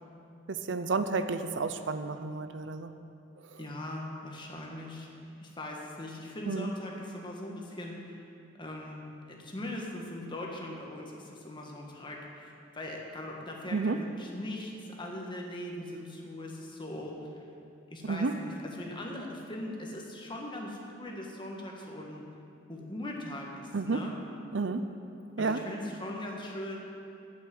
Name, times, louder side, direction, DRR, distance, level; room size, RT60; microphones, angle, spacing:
voice 1, 0.5-2.9 3.5-3.6 6.5-6.7 13.7-14.0 18.0-18.3 23.7-24.0 24.5-24.9 25.4-25.6, right 4 dB, 70° right, 9 dB, 0.6 m, -31 dB
voice 2, 3.6-5.1 5.4-8.2 8.6-9.0 9.3-17.4 17.9-18.5 18.8-22.2 22.7-24.1 25.4-26.8, left 1 dB, 25° left, -1 dB, 1.6 m, -40 dB
8.6 x 8.2 x 9.2 m, 2.6 s
head